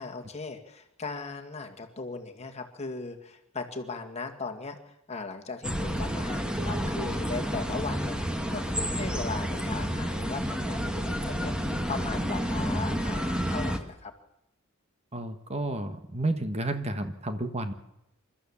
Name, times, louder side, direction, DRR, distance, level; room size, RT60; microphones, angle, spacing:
voice 1, 0.0-8.2 8.5-11.5 11.9-14.1, left 4 dB, 30° left, 4 dB, 2.0 m, -38 dB
sound 1, 5.6-13.8, equal, 5° right, 1.5 m, -30 dB
voice 2, 15.1-17.7, right 2 dB, 30° right, 8 dB, 1.4 m, -31 dB
28.0 x 13.0 x 7.3 m, 0.85 s
head